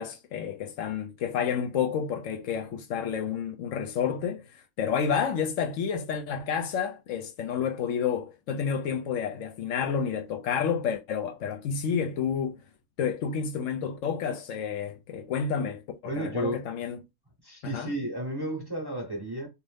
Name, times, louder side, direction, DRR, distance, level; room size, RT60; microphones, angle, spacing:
voice 1, 0.0-4.4 4.8-12.6 13.0-17.0 17.6-17.9, left 7 dB, 75° left, 0.9 m, -30 dB
voice 2, 16.0-16.6 17.4-19.5, right 1 dB, 20° right, 0.8 m, -32 dB
2.6 x 2.5 x 3.4 m
omnidirectional pair, 1.4 m